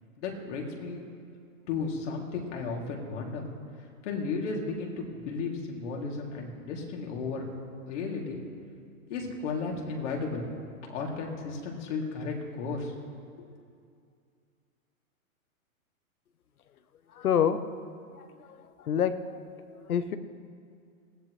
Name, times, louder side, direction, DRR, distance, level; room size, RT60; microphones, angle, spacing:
voice 1, 0.2-1.0 1.7-3.4 4.0-7.5 7.9-8.4 9.1-10.4 10.9-12.9 13.4-13.5, left 4 dB, 55° left, -1 dB, 3.0 m, -34 dB
voice 2, 17.2-17.6 18.2-19.4 19.7-20.2, left 8 dB, 90° left, 11 dB, 1.1 m, -28 dB
20.0 x 15.0 x 3.3 m, 2.3 s
hypercardioid pair, 145°, 43 cm